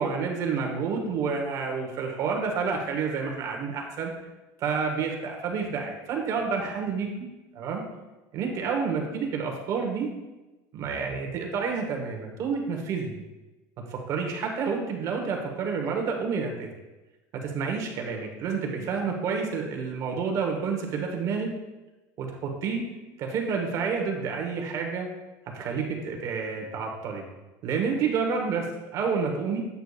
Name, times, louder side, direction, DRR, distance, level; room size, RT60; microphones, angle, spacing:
voice 1, 0.0-4.1 4.6-7.3 7.5-7.8 8.3-10.1 10.7-13.2 13.9-16.7 17.3-21.5 22.2-22.9 23.2-25.1 25.5-27.2 27.6-29.6, right 5 dB, 45° right, 1 dB, 1.1 m, -29 dB
8.1 x 6.7 x 2.4 m, 1.1 s
cardioid pair, 155°, 8 cm